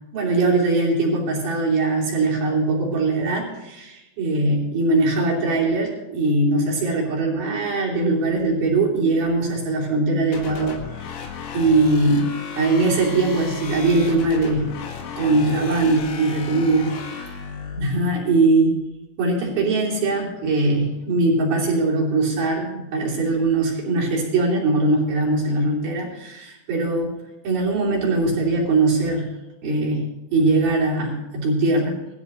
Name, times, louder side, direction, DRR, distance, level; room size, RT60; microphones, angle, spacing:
voice 1, 0.1-10.8 11.5-12.3 12.6-14.7 15.2-16.9 17.8-18.8 19.2-27.2 27.4-29.3 29.6-30.1 30.3-32.0, right 2 dB, 50° right, -4 dB, 4.3 m, -21 dB
sound 1, 10.3-17.9, left 6 dB, 85° left, 4.5 m, -34 dB
19.5 x 13.5 x 3.0 m, 0.98 s
omnidirectional pair, 6.0 m